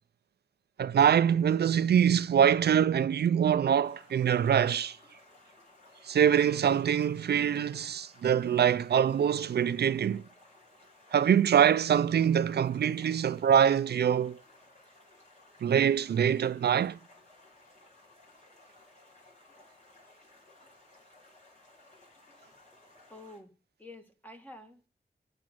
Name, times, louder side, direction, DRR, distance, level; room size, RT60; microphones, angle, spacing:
voice 1, 0.8-5.0 6.0-10.2 11.1-14.4 15.6-17.0, right 8 dB, 85° right, 0.4 m, -24 dB
Stream, 3.8-23.4, left 2 dB, 45° left, 4.9 m, -59 dB
voice 2, 23.1-23.5 23.8-24.9, left 1 dB, 10° left, 1.7 m, -49 dB
8.4 x 6.2 x 7.7 m
wide cardioid pair, 90°, 17 cm